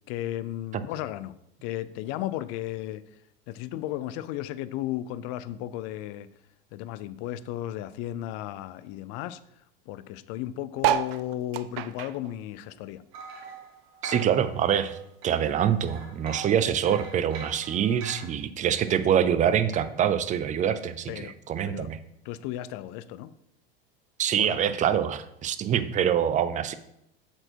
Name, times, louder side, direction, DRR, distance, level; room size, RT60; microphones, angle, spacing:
voice 1, 0.1-1.3 1.6-3.0 3.5-6.3 6.7-9.4 9.9-13.0 21.1-21.3 21.6-21.9 22.2-23.3 24.4-24.6, left 13 dB, 55° left, 0.5 m, -34 dB
sound 1, 10.8-13.5 13.9-15.4 15.9-16.2 16.4-16.8 17.6-17.7, right 11 dB, 75° right, 0.5 m, -31 dB
sound 2, 13.1-15.0 15.2-18.3, right 5 dB, 60° right, 1.9 m, -42 dB
voice 2, 14.0-15.0 15.2-22.0 24.2-26.7, right 9 dB, 25° right, 0.5 m, -25 dB
7.6 x 4.4 x 4.5 m
supercardioid pair, 110°, 29 cm